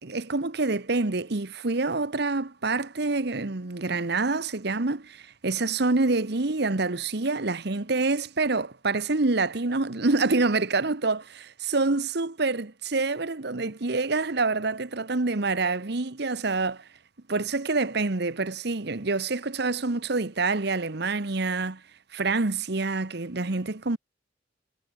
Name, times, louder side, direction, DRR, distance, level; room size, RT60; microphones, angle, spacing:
voice 1, 0.0-11.2 11.7-16.8 17.3-21.8 22.1-24.0, right 3 dB, 65° right, 1.2 m, -26 dB
head